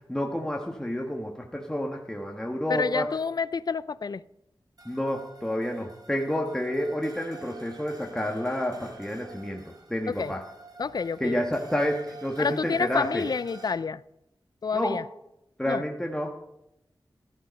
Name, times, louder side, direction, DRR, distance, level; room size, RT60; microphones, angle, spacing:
voice 1, 0.1-3.1 4.8-10.4 11.2-13.2 14.7-15.0 15.6-16.3, equal, 5° left, 1.5 m, -29 dB
voice 2, 2.7-4.2 10.1-10.3 10.8-11.4 12.4-14.0 14.6-15.0 15.7-15.8, left 5 dB, 50° left, 0.4 m, -29 dB
sound 1, 4.8-13.7, right 4 dB, 50° right, 3.2 m, -48 dB
14.5 x 12.5 x 5.2 m
wide cardioid pair, 80°, 8 cm